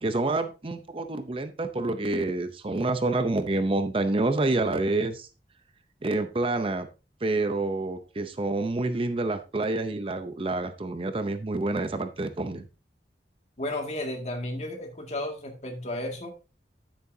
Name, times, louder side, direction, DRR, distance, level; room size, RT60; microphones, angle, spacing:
voice 1, 0.0-5.3 6.0-6.9 7.2-12.7, right 2 dB, 30° right, 10 dB, 0.6 m, -28 dB
voice 2, 13.6-16.3, left 1 dB, 40° left, 3 dB, 2.0 m, -33 dB
9.7 x 8.7 x 2.7 m, 0.31 s
head